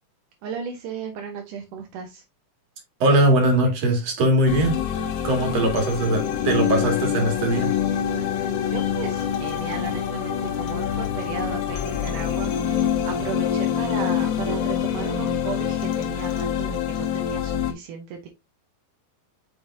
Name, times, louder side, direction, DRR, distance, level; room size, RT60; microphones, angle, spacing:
voice 1, 0.4-2.2 8.7-18.3, right 6 dB, 75° right, 3 dB, 1.9 m, -35 dB
voice 2, 3.0-4.7 5.2-7.7, right 1 dB, 45° right, 2 dB, 2.7 m, -20 dB
sound 1, 4.5-17.7, left 9 dB, 70° left, 2.0 m, -25 dB
6.8 x 5.3 x 2.6 m, 0.23 s
omnidirectional pair, 4.7 m